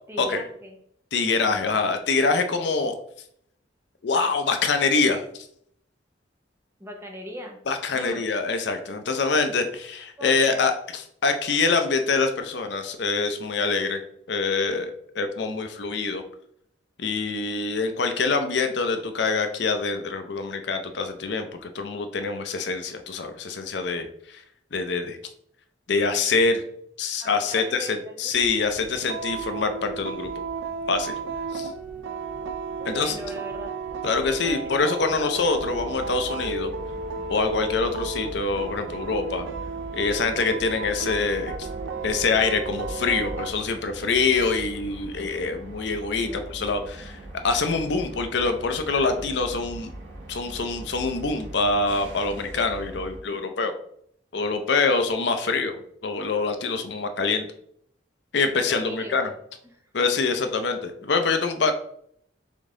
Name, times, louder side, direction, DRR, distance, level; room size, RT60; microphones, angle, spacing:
voice 1, 0.1-0.8 1.4-1.8 6.8-7.6 7.9-8.3 10.2-10.7 27.2-28.3 31.9-32.2 32.8-33.7 34.2-34.8 46.0-46.5 55.1-55.2 58.7-59.3 59.7-59.8, equal, 15° right, 1 dB, 0.7 m, -39 dB
voice 2, 1.1-2.9 4.0-5.5 7.7-14.0 14.3-16.2 17.0-24.4 24.7-25.2 25.9-26.6 27.0-30.3 30.9-31.1 31.5-31.7 32.9-33.2 34.0-36.7 37.3-39.5 39.9-41.7 42.0-47.2 47.4-49.9 50.3-53.7 54.3-57.5 58.3-59.3 59.9-61.7, left 4 dB, 60° left, 7 dB, 0.5 m, -25 dB
sound 1, 28.3-43.5, right 4 dB, 85° right, 0.4 m, -34 dB
sound 2, 35.5-53.2, right 1 dB, 65° right, 1.3 m, -41 dB
3.7 x 3.5 x 3.7 m, 0.68 s
head